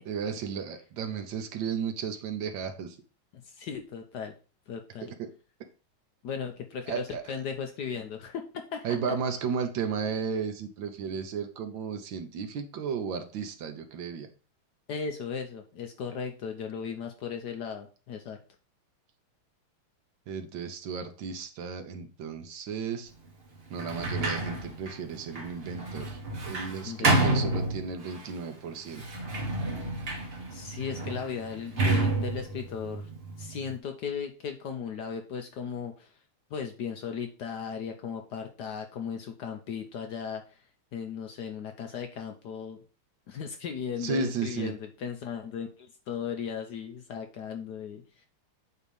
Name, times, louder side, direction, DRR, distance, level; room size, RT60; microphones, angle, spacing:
voice 1, 0.1-3.0 5.2-5.3 6.9-7.3 8.8-14.3 20.3-23.1 23.7-29.0 44.0-44.7, right 6 dB, 70° right, 7 dB, 1.4 m, -34 dB
voice 2, 3.4-4.3 4.7-5.1 6.2-8.9 14.9-18.4 26.8-27.5 30.5-33.1 33.4-36.2 36.5-40.6 40.9-42.8 43.3-48.3, left 6 dB, 65° left, 5 dB, 1.1 m, -37 dB
Sliding door, 23.7-28.2 28.9-33.7, right 2 dB, 40° right, 1.0 m, -30 dB
8.1 x 2.9 x 5.2 m, 0.36 s
omnidirectional pair, 2.3 m